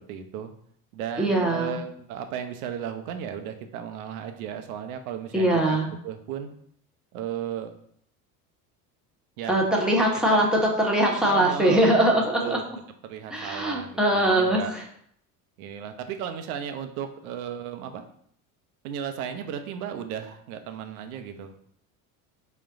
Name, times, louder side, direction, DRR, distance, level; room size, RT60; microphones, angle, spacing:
voice 1, 0.1-0.5 0.9-5.8 6.0-6.5 7.1-7.7 9.4-9.5 10.2-10.4 11.2-12.6 13.0-14.7 15.6-18.0 18.8-21.5, right 8 dB, 75° right, 7 dB, 0.7 m, -35 dB
voice 2, 1.2-1.7 5.3-5.9 9.5-12.6 13.3-14.8, right 1 dB, ahead, -1 dB, 1.0 m, -22 dB
4.0 x 2.2 x 3.8 m, 0.66 s
hypercardioid pair, 70°, 44 cm